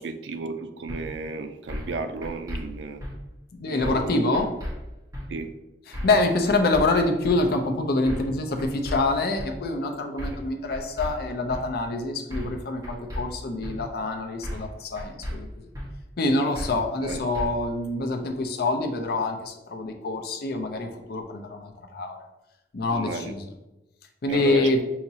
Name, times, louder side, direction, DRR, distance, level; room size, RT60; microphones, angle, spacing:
voice 1, 0.0-3.0 3.7-4.2 5.3-5.5 17.0-17.2 22.9-23.3 24.3-24.7, right 3 dB, 80° right, 8 dB, 0.4 m, -33 dB
sound 1, 0.9-1.0 1.7-1.9 2.2-2.6 3.0-3.1 3.8-4.1 4.3-4.7 5.1-5.2 5.9-6.2 6.5-6.8 7.2-7.4 8.1-8.3 8.6-9.0 9.4-9.5 10.2-10.4 10.7-11.1 11.5-11.6 12.3-12.6 12.8-13.2 13.6-13.7 14.4-14.7 15.0-15.3 15.7-15.9 16.5-16.8 17.1-17.5, equal, 20° right, 1.2 m, -33 dB
voice 2, 3.5-4.5 5.9-15.7 16.2-22.2 22.7-23.4 24.2-24.8, left 2 dB, 60° left, 5 dB, 0.5 m, -26 dB
5.6 x 2.9 x 2.8 m, 0.99 s
head